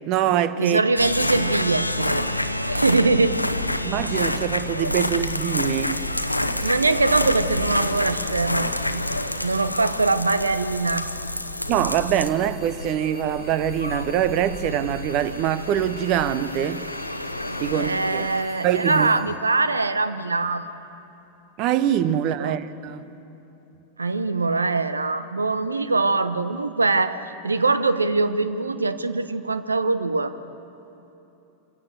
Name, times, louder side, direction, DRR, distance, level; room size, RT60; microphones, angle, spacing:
voice 1, 0.0-0.8 3.8-6.0 11.7-16.8 17.6-18.3 18.6-19.1 21.6-23.1, right 11 dB, 40° right, 1.0 m, -24 dB
voice 2, 0.6-2.3 2.7-3.4 6.6-9.0 9.4-11.1 17.7-20.6 22.4-22.6 24.0-27.2 27.4-30.4, right 3 dB, 80° right, 1.0 m, -23 dB
sound 1, 1.0-18.4, left 1 dB, 85° left, 0.8 m, -28 dB
sound 2, 12.2-20.4, left 2 dB, 10° left, 3.6 m, -49 dB
26.5 x 16.5 x 8.2 m
figure-of-eight pair, 90°, 0 cm